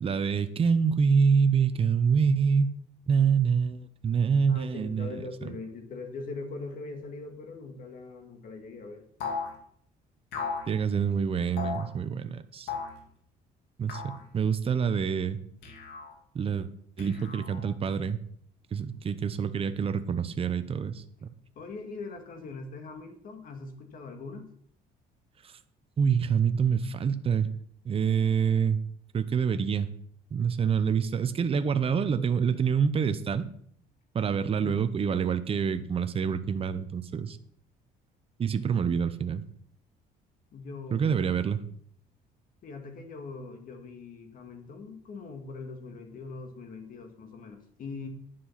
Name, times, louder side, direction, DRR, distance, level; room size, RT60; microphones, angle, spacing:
voice 1, 0.0-2.7 3.1-5.5 10.7-12.7 13.8-15.4 16.3-16.7 17.0-18.2 18.7-21.3 25.4-25.5 26.0-27.5 27.8-28.8 29.1-29.9 30.3-33.4 34.1-37.4 38.4-39.4 40.9-41.6, right 6 dB, 35° right, 10 dB, 0.8 m, -26 dB
voice 2, 4.5-9.0 21.6-24.5 34.5-34.8 40.5-41.2 42.6-48.1, left 3 dB, 55° left, 5 dB, 2.2 m, -41 dB
sound 1, 9.2-9.5 10.3-10.7 11.6-11.9 12.7-13.0 13.9-14.2 15.6-16.1 17.0-17.7, left 5 dB, 85° left, 2.4 m, -35 dB
10.5 x 7.6 x 5.8 m, 0.65 s
cardioid pair, 110°, 17 cm